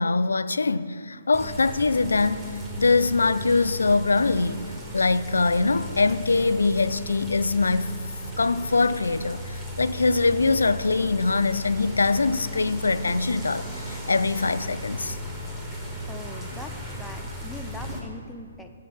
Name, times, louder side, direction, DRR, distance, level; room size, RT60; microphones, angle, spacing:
voice 1, 0.0-8.0 8.4-15.2, left 3 dB, 80° left, 0.3 m, -23 dB
sound 1, 1.3-18.0, equal, 15° right, 1.4 m, -36 dB
voice 2, 16.1-18.7, left 1 dB, ahead, 0.5 m, -41 dB
7.4 x 5.5 x 7.3 m
figure-of-eight pair, 135°, 0 cm